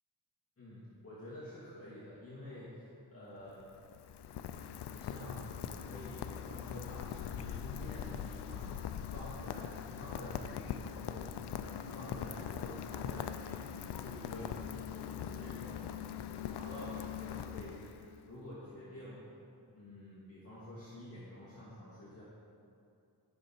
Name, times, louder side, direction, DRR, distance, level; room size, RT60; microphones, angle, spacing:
voice 1, 0.6-3.7 4.9-8.7 9.0-13.6 13.9-15.9 16.4-19.2 19.7-22.2, left 1 dB, 35° left, -9 dB, 2.4 m, -49 dB
Rain, 3.4-18.2, left 9 dB, 85° left, 0.6 m, -42 dB
13.5 x 6.7 x 4.4 m, 2.5 s
cardioid pair, 90°, 39 cm